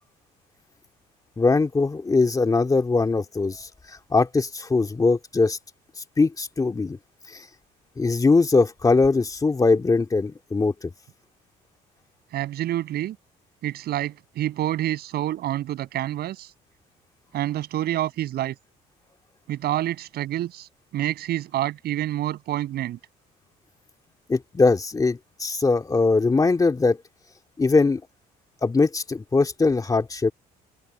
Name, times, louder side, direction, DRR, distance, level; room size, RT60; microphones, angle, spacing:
voice 1, 1.4-5.6 6.2-7.0 7.3-7.4 8.0-10.9 24.3-27.0 27.6-28.0 28.6-30.3, left 3 dB, 20° left, 2.4 m, -21 dB
voice 2, 12.3-13.2 13.6-16.5 17.3-18.5 19.5-23.0, right 13 dB, 70° right, 7.1 m, -28 dB
open air
cardioid pair, 110°, 17 cm